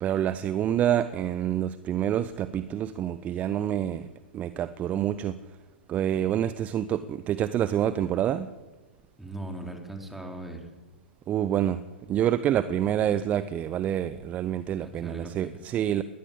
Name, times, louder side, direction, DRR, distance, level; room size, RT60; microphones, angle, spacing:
voice 1, 0.0-4.1 4.3-5.4 5.9-8.5 11.3-11.8 12.1-16.0, right 10 dB, 25° right, 15 dB, 0.9 m, -27 dB
voice 2, 9.2-10.7 14.8-15.6, right 1 dB, 5° right, 3 dB, 3.9 m, -39 dB
20.5 x 20.0 x 8.8 m, 1.2 s
figure-of-eight pair, 105°, 6 cm